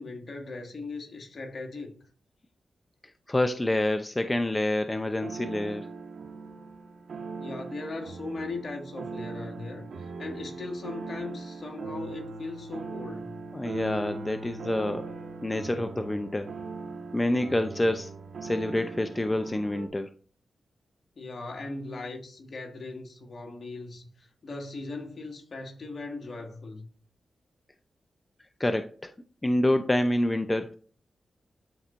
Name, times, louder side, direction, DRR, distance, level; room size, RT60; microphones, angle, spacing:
voice 1, 0.0-2.0 7.4-13.4 21.2-26.9, left 3 dB, 60° left, 2.0 m, -39 dB
voice 2, 3.3-5.9 13.5-15.1 15.4-16.5 17.1-18.1 18.4-20.1 28.6-29.1 29.4-30.7, left 1 dB, 25° left, 0.6 m, -27 dB
sound 1, 5.0-19.9, right 4 dB, 85° right, 1.4 m, -40 dB
12.5 x 4.3 x 2.6 m
cardioid pair, 50°, 0 cm